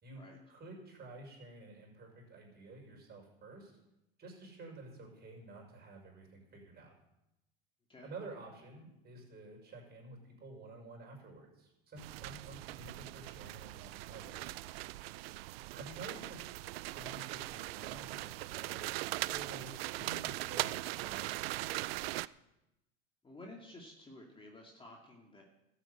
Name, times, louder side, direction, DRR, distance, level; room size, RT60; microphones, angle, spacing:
voice 1, 0.0-3.7 4.2-6.9 8.0-14.5 15.7-16.4 16.8-18.9 19.3-21.9, right 2 dB, 35° right, 0 dB, 6.1 m, -51 dB
sound 1, 12.0-22.3, right 18 dB, 85° right, 0.5 m, -40 dB
voice 2, 23.2-25.4, left 1 dB, 15° left, 0 dB, 2.6 m, -52 dB
13.0 x 8.3 x 8.2 m, 0.90 s
supercardioid pair, 100°, 29 cm